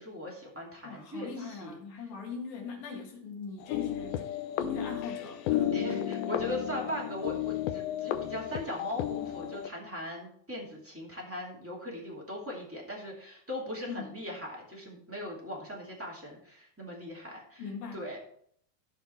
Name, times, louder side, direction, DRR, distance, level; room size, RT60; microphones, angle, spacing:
voice 1, 0.0-1.8 5.7-18.2, left 1 dB, 5° right, -3 dB, 1.9 m, -39 dB
voice 2, 0.8-4.3 4.5-6.1 13.9-14.2 17.6-18.0, left 5 dB, 70° left, 1 dB, 3.6 m, -40 dB
sound 1, 3.6-9.7, left 11 dB, 85° left, 2.5 m, -33 dB
14.0 x 5.7 x 4.5 m, 0.63 s
omnidirectional pair, 4.5 m